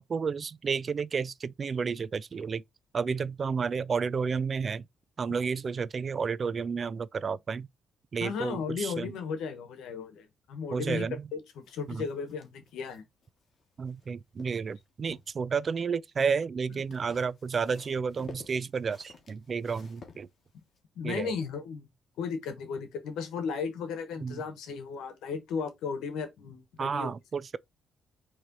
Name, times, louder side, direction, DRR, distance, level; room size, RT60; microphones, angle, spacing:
voice 1, 0.0-2.6 2.9-4.9 5.2-7.7 8.1-9.1 10.7-11.3 11.9-12.1 13.8-20.3 21.0-21.3 24.2-24.4 26.8-27.6, right 5 dB, 40° right, 0.3 m, -31 dB
voice 2, 8.2-11.1 11.3-13.0 16.7-16.8 21.0-21.9 22.2-27.1, left 5 dB, 85° left, 1.1 m, -35 dB
sound 1, 11.6-14.1 14.4-15.4 16.7-20.8, left 4 dB, 50° left, 1.3 m, -52 dB
4.3 x 3.2 x 3.8 m
cardioid pair, 90°, 0 cm